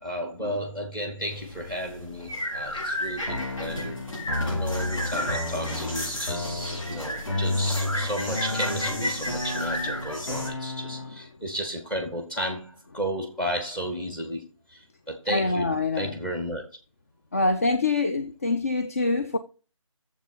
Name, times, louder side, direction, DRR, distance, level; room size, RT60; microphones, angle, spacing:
voice 1, 0.0-4.0 4.4-16.6, equal, 5° left, 0.8 m, -33 dB
sound 1, 1.3-10.5, equal, 75° left, 5.7 m, -33 dB
sound 2, 3.3-11.3, left 2 dB, 50° left, 3.1 m, -32 dB
voice 2, 15.3-16.1 17.3-19.4, left 3 dB, 25° left, 0.4 m, -25 dB
7.3 x 7.1 x 5.7 m
figure-of-eight pair, 160°, 17 cm